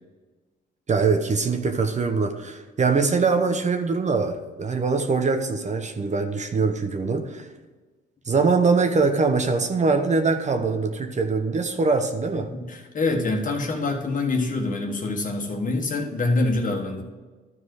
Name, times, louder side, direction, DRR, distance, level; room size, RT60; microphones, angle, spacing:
voice 1, 0.9-7.5 8.3-12.5, right 4 dB, 35° right, 6 dB, 0.9 m, -23 dB
voice 2, 12.5-17.0, left 2 dB, 40° left, 3 dB, 1.6 m, -25 dB
12.5 x 4.7 x 4.8 m, 1.3 s
cardioid pair, 90°, 20 cm